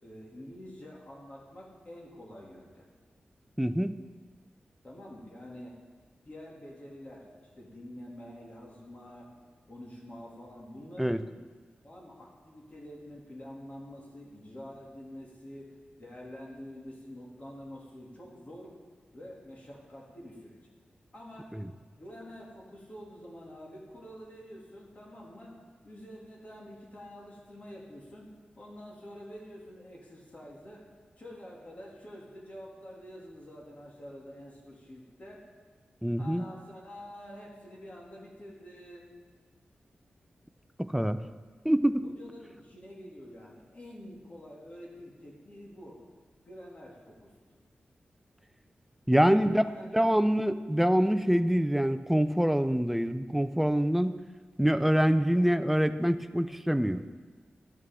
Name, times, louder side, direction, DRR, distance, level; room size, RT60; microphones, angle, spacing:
voice 1, 0.0-2.9 4.8-5.8 6.2-9.3 9.7-11.2 11.8-18.8 19.1-20.6 21.1-21.5 22.0-25.6 25.8-28.3 28.6-30.8 31.2-35.5 36.2-39.1 42.0-46.0 46.5-47.3 49.2-50.2, equal, 40° left, -2 dB, 2.4 m, -47 dB
voice 2, 3.6-4.0 11.0-11.2 21.5-21.7 36.0-36.4 40.8-41.2 41.6-42.1 49.1-49.6 49.9-54.2 54.6-57.0, equal, 5° right, 11 dB, 0.4 m, -25 dB
12.5 x 9.0 x 3.6 m, 1.4 s
wide cardioid pair, 75°, 4 cm